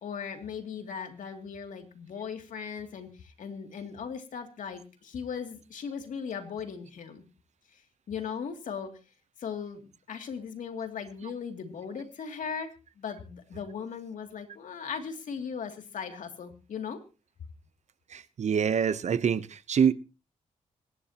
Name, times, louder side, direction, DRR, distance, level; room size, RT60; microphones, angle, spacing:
voice 1, 0.0-7.2 7.7-7.8 8.1-8.9 9.4-9.8 10.1-17.0, left 6 dB, 75° left, 2.7 m, -38 dB
voice 2, 18.1-19.9, right 7 dB, 60° right, 0.8 m, -25 dB
25.5 x 11.0 x 2.9 m
cardioid pair, 85°, 13 cm